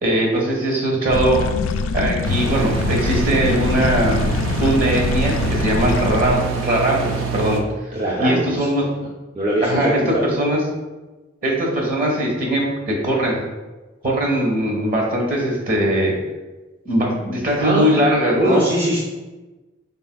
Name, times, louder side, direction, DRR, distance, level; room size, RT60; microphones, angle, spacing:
voice 1, 0.0-1.4 1.9-4.2 4.6-7.6 8.2-8.9 9.6-10.6 11.4-13.4 14.0-16.2 16.8-18.6, right 1 dB, 45° right, -1 dB, 1.3 m, -20 dB
sound 1, 1.1-6.4, left 4 dB, 90° left, 0.3 m, -23 dB
sound 2, 2.2-7.6, right 5 dB, 90° right, 0.6 m, -26 dB
voice 2, 7.9-8.7 9.3-10.2 17.6-17.9 18.3-19.0, right 1 dB, 30° right, -5 dB, 0.5 m, -21 dB
5.5 x 4.1 x 2.3 m, 1.2 s
head